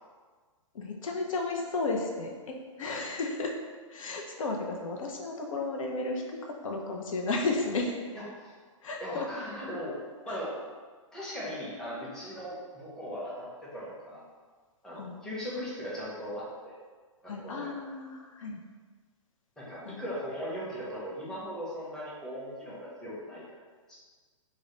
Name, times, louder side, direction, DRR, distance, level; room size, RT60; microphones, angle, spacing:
voice 1, 0.7-3.5 3.9-8.0 8.8-9.3 10.3-10.4 14.9-15.2 17.2-18.6 19.8-20.1, left 3 dB, 75° left, 1 dB, 0.4 m, -33 dB
voice 2, 8.1-8.5 9.0-10.0 10.3-10.5 11.1-14.2 14.8-16.8 17.2-17.7 19.6-23.4 23.9-24.0, equal, 5° left, -8 dB, 0.6 m, -38 dB
2.3 x 2.0 x 2.9 m, 1.5 s
hypercardioid pair, 125°, 17 cm